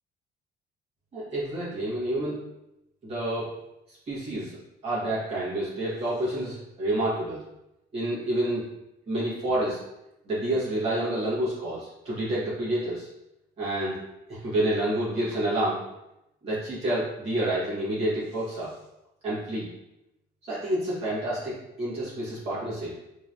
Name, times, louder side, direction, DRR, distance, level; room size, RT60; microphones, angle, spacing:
voice 1, 1.1-2.4 3.0-3.5 3.9-4.6 4.8-7.4 7.9-8.7 9.1-9.8 10.2-13.1 13.6-14.0 14.3-15.8 16.4-18.7 19.2-19.6 20.4-22.9, right 1 dB, 35° right, -9 dB, 1.4 m, -28 dB
3.8 x 3.0 x 2.6 m, 0.88 s
cardioid pair, 180°, 18 cm